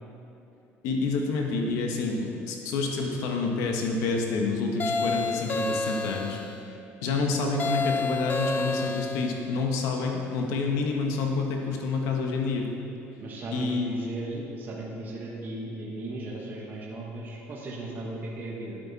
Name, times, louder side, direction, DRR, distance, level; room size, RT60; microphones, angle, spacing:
voice 1, 0.8-6.4 7.0-12.7 13.5-13.9, left 3 dB, 85° left, 2 dB, 1.3 m, -28 dB
sound 1, 4.8-6.6 7.6-9.4, left 3 dB, 40° left, 0.7 m, -29 dB
voice 2, 13.2-18.8, right 2 dB, 40° right, -3 dB, 1.4 m, -36 dB
9.8 x 8.7 x 4.2 m, 3.0 s
cardioid pair, 125°, 5 cm